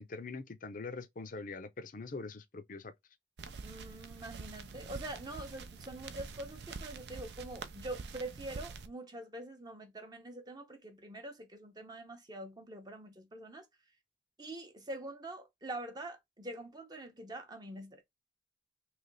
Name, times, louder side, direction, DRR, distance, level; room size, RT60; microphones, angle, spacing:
voice 1, 0.0-2.9, left 3 dB, 45° left, 0.5 m, -43 dB
sound 1, 3.4-8.9, right 4 dB, 65° right, 0.5 m, -46 dB
voice 2, 3.6-13.7 14.4-18.0, right 1 dB, 20° right, 0.7 m, -45 dB
3.3 x 3.0 x 3.9 m
head